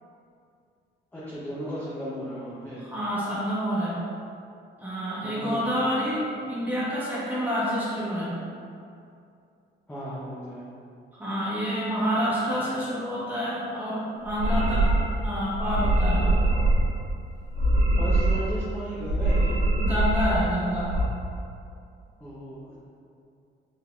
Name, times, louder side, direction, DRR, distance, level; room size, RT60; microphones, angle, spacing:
voice 1, 1.1-2.8 5.2-5.7 9.9-10.6 18.0-19.6 22.2-22.8, equal, 10° left, -10 dB, 0.7 m, -35 dB
voice 2, 2.8-4.1 4.8-8.4 11.2-14.9 15.2-16.4 19.8-21.0, equal, 10° right, -9 dB, 1.2 m, -28 dB
sound 1, 14.3-15.2 15.5-16.9 17.4-18.6 19.0-20.4 20.7-21.0, right 1 dB, 90° right, 1.1 m, -23 dB
3.8 x 2.7 x 2.4 m, 2.5 s
cardioid pair, 90°, 20 cm